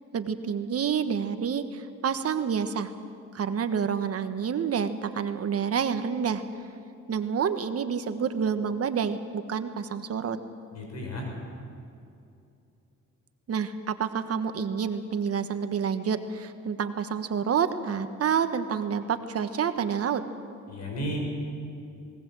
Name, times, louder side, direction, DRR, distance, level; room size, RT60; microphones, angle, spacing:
voice 1, 0.1-2.9 3.3-6.4 7.1-10.4 13.5-20.2, right 7 dB, 50° right, 9 dB, 1.4 m, -28 dB
voice 2, 10.7-11.3 20.7-21.2, equal, 60° left, 0 dB, 6.6 m, -33 dB
20.0 x 18.0 x 7.7 m, 2.6 s
cardioid pair, 90°, 30 cm